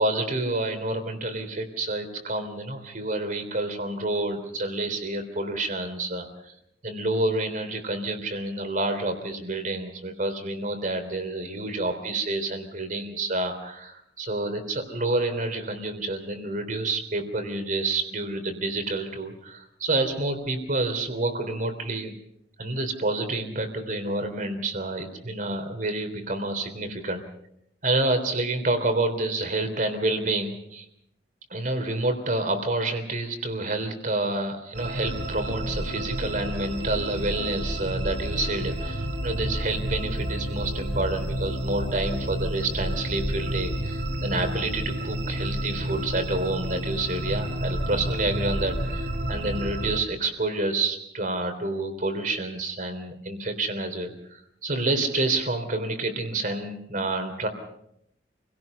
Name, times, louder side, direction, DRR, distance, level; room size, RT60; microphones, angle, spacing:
voice 1, 0.0-6.5 6.8-22.1 22.6-27.2 27.8-30.9 31.5-57.5, right 2 dB, 50° right, 7 dB, 3.5 m, -28 dB
sound 1, 34.7-50.0, equal, 65° right, 3.7 m, -30 dB
28.5 x 17.5 x 5.6 m, 0.74 s
head